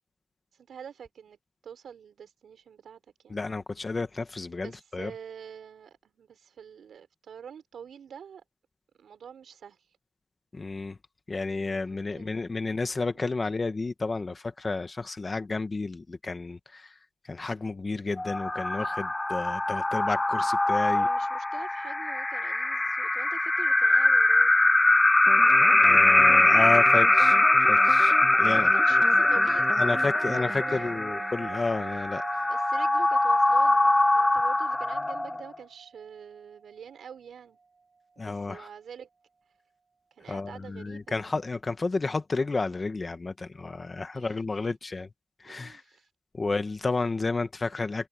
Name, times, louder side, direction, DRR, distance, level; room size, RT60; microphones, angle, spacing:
voice 1, 0.5-1.4 1.6-3.4 4.6-8.4 9.0-9.8 11.8-12.7 13.1-13.3 20.9-24.5 28.4-29.8 30.7-30.8 32.5-37.6 38.2-39.1 40.1-41.4 44.1-44.4 44.6-44.8 45.4-46.1, right 7 dB, 85° right, 5.9 m, -46 dB
voice 2, 3.3-5.1 10.5-11.0 11.3-17.0 17.2-21.1 25.8-28.7 29.8-32.4 38.2-38.7 40.3-45.1 45.4-45.8 46.3-48.1, left 3 dB, 35° left, 1.6 m, -31 dB
sound 1, 18.2-35.6, left 2 dB, 20° left, 0.3 m, -22 dB
sound 2, 25.2-32.2, right 3 dB, 35° right, 0.6 m, -39 dB
sound 3, 25.9-37.3, right 4 dB, 55° right, 1.8 m, -43 dB
cardioid pair, 80°, 0 cm